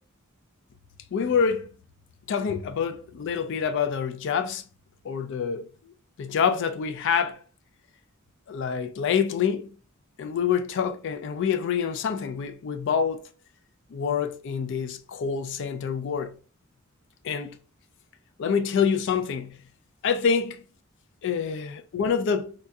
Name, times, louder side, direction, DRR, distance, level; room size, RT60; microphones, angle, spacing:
voice 1, 1.1-1.7 2.3-4.6 5.0-5.7 6.2-7.4 8.5-9.7 10.2-13.2 13.9-16.4 17.2-17.6 18.4-19.6 20.0-20.6 21.2-22.5, left 6 dB, 60° left, 0.4 m, -26 dB
3.5 x 2.3 x 2.6 m
head